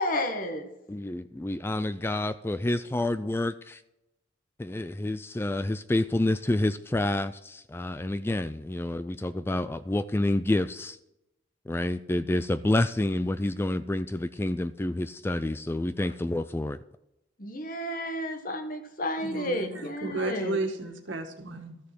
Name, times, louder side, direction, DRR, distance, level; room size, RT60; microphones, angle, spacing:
voice 1, 0.0-0.8 17.4-20.6, left 1 dB, 45° left, 1.4 m, -31 dB
voice 2, 0.9-3.8 4.6-11.0 11.7-16.8, left 1 dB, 10° left, 0.3 m, -28 dB
voice 3, 19.2-19.7 20.0-21.8, right 2 dB, 85° right, 1.9 m, -33 dB
13.5 x 6.6 x 6.1 m
head